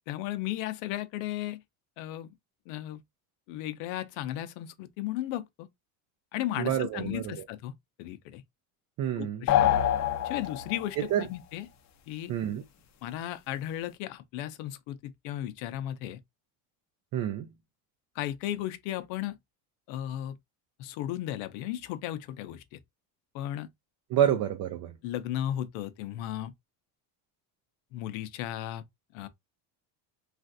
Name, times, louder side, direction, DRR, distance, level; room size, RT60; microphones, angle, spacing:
voice 1, 0.0-1.6 2.0-2.3 2.7-3.0 3.5-5.7 6.3-7.7 8.0-8.4 9.2-9.8 10.2-11.7 12.1-12.3 13.0-16.2 18.2-19.4 19.9-20.4 20.8-22.8 23.3-23.7 24.3-24.4 25.0-26.5 27.9-28.8 29.1-29.3, left 13 dB, 80° left, 0.7 m, -35 dB
voice 2, 6.6-7.3 9.0-9.4 11.1-11.2 12.3-12.6 17.1-17.5 24.1-24.9, right 10 dB, 45° right, 0.4 m, -28 dB
sound 1, 9.5-11.0, left 11 dB, 40° left, 0.5 m, -25 dB
3.2 x 2.5 x 2.5 m
cardioid pair, 140°, 46 cm